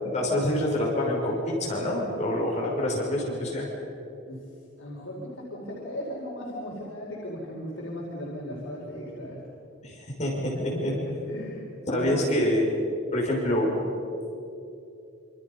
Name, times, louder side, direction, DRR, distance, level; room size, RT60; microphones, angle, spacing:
voice 1, 0.0-3.7 9.8-10.9 11.9-12.6 13.1-13.7, left 1 dB, 35° left, -3 dB, 6.2 m, -26 dB
voice 2, 4.8-9.4 10.5-11.7 11.9-12.2, equal, 75° left, -5 dB, 5.0 m, -37 dB
27.5 x 27.0 x 5.6 m, 2.7 s
head